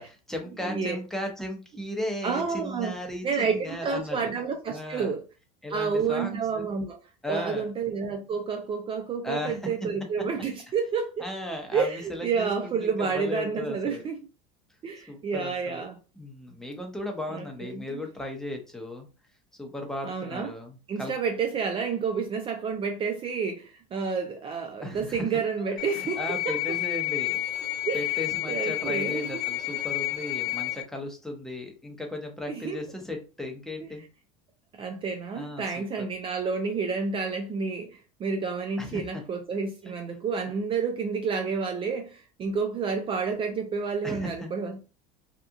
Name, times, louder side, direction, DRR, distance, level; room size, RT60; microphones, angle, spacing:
voice 1, 0.0-4.3 4.7-5.1 5.6-6.7 7.2-7.7 9.2-9.6 11.2-14.0 15.1-15.8 16.2-19.1 19.6-21.1 24.8-25.3 25.6-27.4 27.9-34.0 35.3-35.8 38.8-39.2 44.0-44.5, left 1 dB, 5° left, 0.8 m, -36 dB
voice 2, 0.6-1.0 2.2-2.9 3.2-5.2 5.7-7.0 7.3-11.3 11.7-14.2 14.8-15.9 17.3-18.0 20.0-20.5 20.9-26.2 26.5-26.6 27.8-28.2 28.4-29.4 32.5-32.8 34.8-44.8, right 5 dB, 30° right, 0.4 m, -30 dB
sound 1, 25.8-30.8, left 17 dB, 85° left, 0.4 m, -30 dB
2.8 x 2.3 x 2.3 m
supercardioid pair, 100°, 18 cm